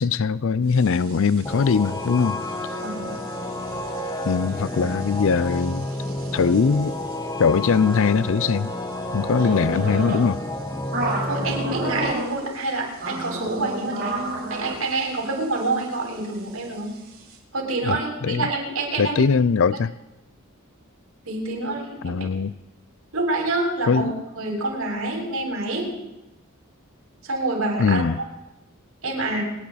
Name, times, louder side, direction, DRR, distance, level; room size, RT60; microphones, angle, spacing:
voice 1, 0.0-2.4 4.3-5.9 6.3-6.9 7.4-8.7 9.1-10.4 17.8-18.5 19.0-19.9 22.0-22.5 23.9-24.1 27.8-28.2, left 5 dB, 65° left, 0.5 m, -21 dB
sound 1, 0.7-17.4, right 2 dB, 50° right, 7.4 m, -35 dB
sound 2, 1.4-12.1, left 1 dB, 20° left, 1.1 m, -30 dB
voice 2, 2.8-3.1 11.2-16.9 17.5-19.2 21.3-22.2 23.1-24.1 24.4-25.9 27.2-28.0 29.0-29.4, right 2 dB, 90° right, 6.9 m, -27 dB
29.0 x 11.0 x 4.2 m
head